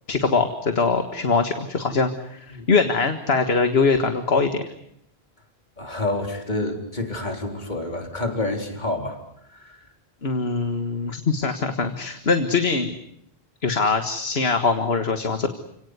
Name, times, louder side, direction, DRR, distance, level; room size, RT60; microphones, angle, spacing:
voice 1, 0.1-4.7 10.2-12.9 13.6-15.5, left 4 dB, 80° left, 8 dB, 2.0 m, -22 dB
voice 2, 5.8-9.2 9.5-9.8, left 2 dB, 45° left, 4 dB, 4.0 m, -28 dB
30.0 x 18.0 x 9.6 m, 0.74 s
omnidirectional pair, 1.0 m